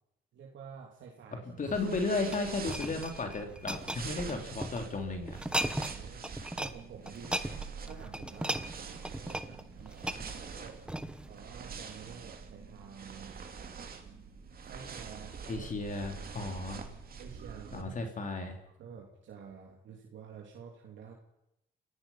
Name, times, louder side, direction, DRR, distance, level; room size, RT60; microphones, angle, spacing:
voice 1, 0.3-1.6 5.7-6.3 6.6-7.4 7.8-10.8 11.3-13.4 14.6-16.1 17.2-17.9 18.8-21.1, right 6 dB, 70° right, 0 dB, 3.1 m, -50 dB
voice 2, 1.5-5.4 15.5-16.8 17.7-18.6, left 3 dB, 40° left, 3 dB, 3.7 m, -34 dB
sound 1, 1.6-4.8 5.3-6.0 6.2-6.8 7.1-11.3 11.9-12.0, right 1 dB, 5° right, 1.4 m, -37 dB
sound 2, 1.7-17.8, right 6 dB, 50° right, 2.7 m, -45 dB
28.5 x 16.0 x 5.8 m, 0.86 s
cardioid pair, 90°, 20 cm